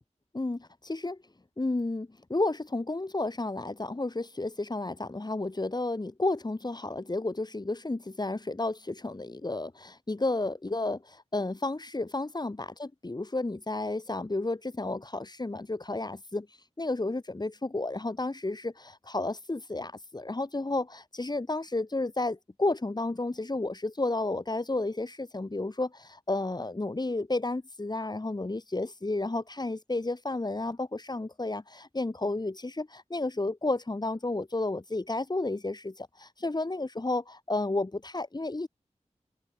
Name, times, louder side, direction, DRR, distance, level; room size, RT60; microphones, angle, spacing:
voice 1, 0.3-1.2 1.6-16.5 16.8-38.7, left 2 dB, 35° left, 5.3 m, -32 dB
wide cardioid pair, 80°, 13 cm